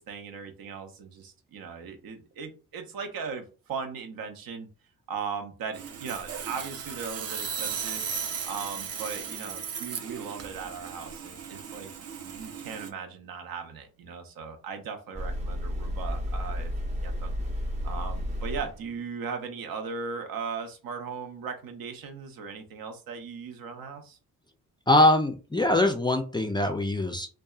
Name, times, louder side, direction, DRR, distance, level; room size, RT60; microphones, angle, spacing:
voice 1, 0.0-4.7 5.1-8.0 8.4-17.4 17.8-24.2, right 5 dB, 75° right, 5 dB, 0.7 m, -38 dB
Sawing, 5.7-12.9, right 6 dB, 45° right, 0.5 m, -36 dB
sound 1, 15.1-18.9, equal, 20° right, 0.8 m, -32 dB
voice 2, 24.9-27.3, left 1 dB, 15° left, 5 dB, 0.3 m, -22 dB
2.7 x 2.3 x 2.3 m, 0.35 s
cardioid pair, 90°, 35 cm